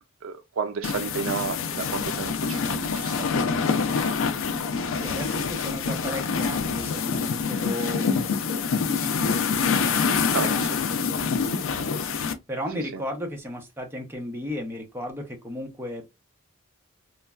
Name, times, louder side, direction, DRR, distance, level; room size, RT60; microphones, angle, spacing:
voice 1, 0.2-3.3 10.3-10.8, right 6 dB, 70° right, 0.4 m, -32 dB
sound 1, 0.8-12.3, left 5 dB, 70° left, 0.4 m, -26 dB
voice 2, 5.0-8.6 8.8-11.0 11.2-11.8 12.5-16.0, left 1 dB, 10° right, 0.6 m, -35 dB
3.1 x 2.2 x 2.3 m
head